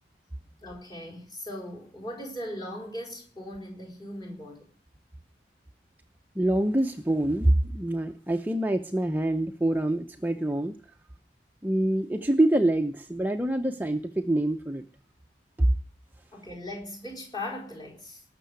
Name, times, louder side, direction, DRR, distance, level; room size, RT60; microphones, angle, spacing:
voice 1, 0.6-4.7 16.3-18.2, left 1 dB, 20° left, 4.3 m, -39 dB
voice 2, 6.4-10.7 11.6-14.8 15.6-15.7, right 1 dB, 10° right, 0.7 m, -25 dB
19.0 x 6.8 x 9.4 m
head